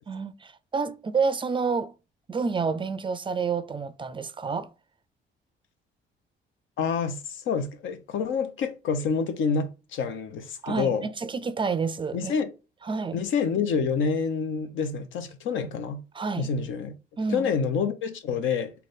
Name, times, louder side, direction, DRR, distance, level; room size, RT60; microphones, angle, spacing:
voice 1, 0.1-1.9 2.3-4.7 10.6-12.3 12.8-13.2 16.1-16.5 17.2-17.5, right 5 dB, 25° right, 0.3 m, -29 dB
voice 2, 6.8-11.1 12.1-12.5 13.1-16.0 16.4-16.9 17.3-18.7, left 5 dB, 80° left, 0.7 m, -27 dB
3.8 x 2.3 x 3.4 m
cardioid pair, 90°, 20 cm